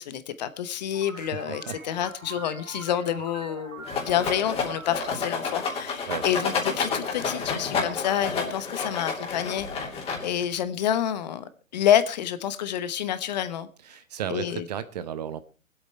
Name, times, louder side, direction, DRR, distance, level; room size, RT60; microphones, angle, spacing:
voice 1, 0.0-9.9 10.2-13.7 14.3-14.7, left 10 dB, 35° left, 1.0 m, -28 dB
sound 1, 0.9-7.2, right 3 dB, 80° right, 3.8 m, -44 dB
voice 2, 1.1-1.8 6.1-6.2 13.9-15.4, right 9 dB, 30° right, 0.8 m, -34 dB
Rattle, 3.9-10.5, left 5 dB, 15° left, 3.0 m, -30 dB
21.5 x 8.3 x 4.5 m
figure-of-eight pair, 125°, 40 cm